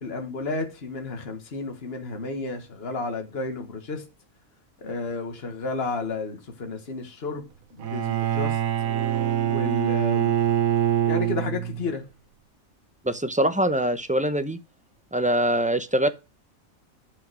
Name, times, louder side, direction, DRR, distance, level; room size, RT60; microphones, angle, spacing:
voice 1, 0.0-4.0 4.8-7.5 7.7-8.6 9.4-10.4 11.1-12.0, left 3 dB, 45° left, 1.9 m, -32 dB
Bowed string instrument, 7.8-11.9, right 11 dB, 75° right, 1.3 m, -24 dB
voice 2, 13.0-14.6 15.1-16.1, right 1 dB, 10° right, 0.5 m, -23 dB
11.0 x 5.7 x 6.2 m
omnidirectional pair, 1.4 m